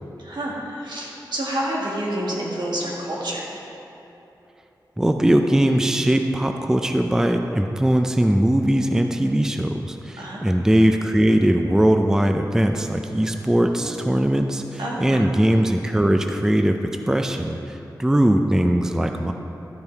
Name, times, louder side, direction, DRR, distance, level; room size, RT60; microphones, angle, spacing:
voice 1, 0.2-3.5 10.2-10.4 14.8-15.2, right 1 dB, 80° right, -4 dB, 1.8 m, -28 dB
voice 2, 5.0-19.3, right 1 dB, 5° right, 5 dB, 0.4 m, -20 dB
12.5 x 5.4 x 4.6 m, 3.0 s
wide cardioid pair, 110°, 8 cm